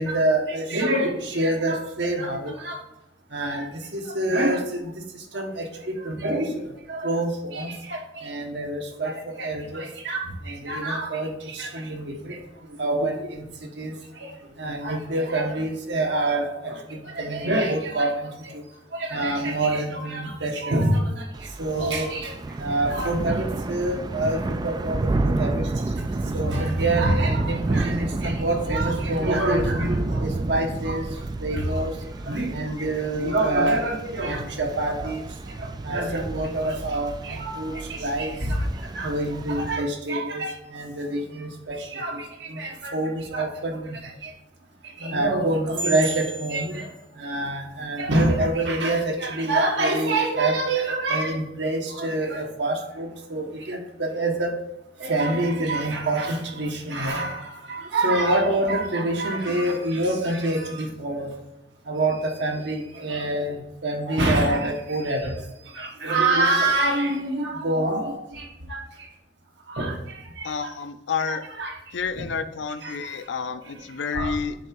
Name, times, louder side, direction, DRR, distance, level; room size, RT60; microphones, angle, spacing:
voice 1, 0.0-2.8 3.3-3.7 4.1-4.6 5.3-5.5 6.0-6.5 6.9-7.7 8.2-9.1 9.4-10.2 10.5-11.3 11.6-12.3 12.8-13.1 13.8-13.9 14.6-16.7 17.2-18.1 19.1-21.1 21.6-22.3 22.6-24.4 24.6-25.0 25.2-25.6 26.3-31.0 31.4-31.9 32.3-35.2 35.9-37.7 38.0-38.6 39.0-42.2 42.5-44.0 45.0-46.8 47.2-53.8 54.1-54.5 55.0-57.3 57.7-61.3 61.9-63.6 63.8-65.3 65.8-68.1 68.7-68.8 69.8-69.9 71.3-71.7 74.1-74.3, right 2 dB, 75° right, 2 dB, 1.3 m, -25 dB
Thunder / Rain, 21.3-39.7, right 2 dB, 25° right, 0.3 m, -30 dB
voice 2, 70.4-71.4 71.9-74.5, left 6 dB, 85° left, 10 dB, 0.5 m, -29 dB
7.6 x 3.4 x 4.6 m, 0.89 s
head